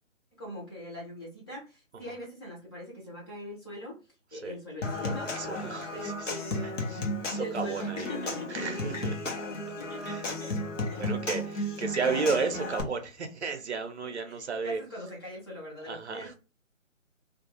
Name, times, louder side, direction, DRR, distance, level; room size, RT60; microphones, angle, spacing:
voice 1, 0.4-3.9 4.3-5.3 5.9-8.7 9.5-10.5 10.9-11.0 14.0-16.4, left 1 dB, 20° left, 0.7 m, -41 dB
Human voice / Acoustic guitar / Percussion, 4.8-12.8, left 1 dB, 65° left, 0.9 m, -34 dB
voice 2, 5.3-6.3 6.9-8.1 8.5-9.4 10.0-10.3 11.0-14.8 15.9-16.3, right 5 dB, 55° right, 0.6 m, -33 dB
2.4 x 2.2 x 2.9 m
figure-of-eight pair, 150°, 40 cm